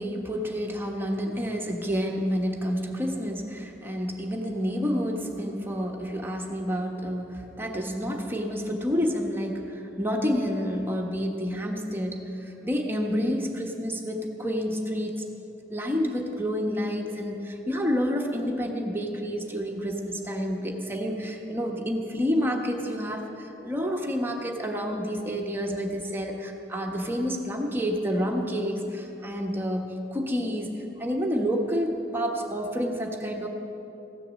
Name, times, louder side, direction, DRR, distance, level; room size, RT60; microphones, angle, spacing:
voice 1, 0.0-15.2 15.7-33.5, equal, 15° right, 1 dB, 1.3 m, -29 dB
15.5 x 10.5 x 7.5 m, 3.0 s
head